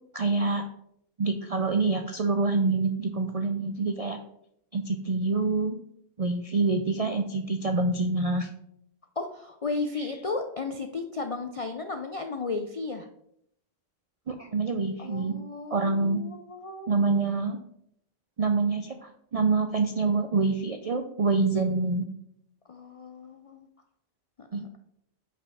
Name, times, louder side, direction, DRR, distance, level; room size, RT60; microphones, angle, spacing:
voice 1, 0.1-0.6 1.2-4.2 4.7-5.8 6.2-8.5 14.3-15.3 15.7-16.2 16.9-17.6 18.4-22.1 24.5-24.8, right 3 dB, 60° right, 6 dB, 0.3 m, -26 dB
voice 2, 9.2-13.1 15.0-16.9 22.7-23.7 24.4-24.8, left 3 dB, 60° left, 6 dB, 0.3 m, -34 dB
5.4 x 5.1 x 5.4 m, 0.74 s
omnidirectional pair, 1.3 m